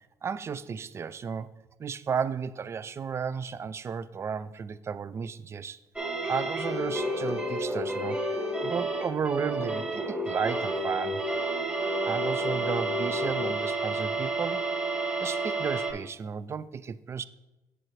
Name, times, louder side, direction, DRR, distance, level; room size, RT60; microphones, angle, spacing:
voice 1, 0.2-1.5 1.8-5.8 6.3-11.3 12.0-14.6 15.2-17.2, right 6 dB, 35° right, 0.4 m, -33 dB
sound 1, 6.0-15.9, right 2 dB, 15° right, 2.2 m, -30 dB
7.6 x 7.5 x 3.1 m
cardioid pair, 90°, 8 cm